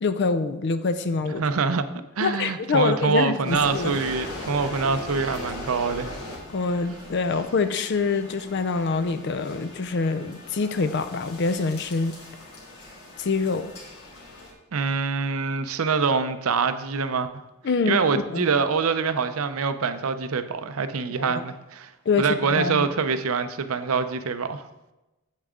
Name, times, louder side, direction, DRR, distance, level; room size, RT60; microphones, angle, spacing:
voice 1, 0.0-1.4 2.2-4.0 6.5-12.2 13.2-13.7 17.6-18.5 21.1-21.4 22.1-22.9, left 4 dB, 50° left, 11 dB, 0.4 m, -25 dB
voice 2, 1.4-1.9 2.2-6.1 14.7-17.3 17.9-21.9 22.2-24.7, right 5 dB, 75° right, 10 dB, 0.6 m, -25 dB
sound 1, 3.4-14.5, left 2 dB, 80° left, 2.9 m, -39 dB
8.6 x 8.1 x 3.7 m, 1.0 s
head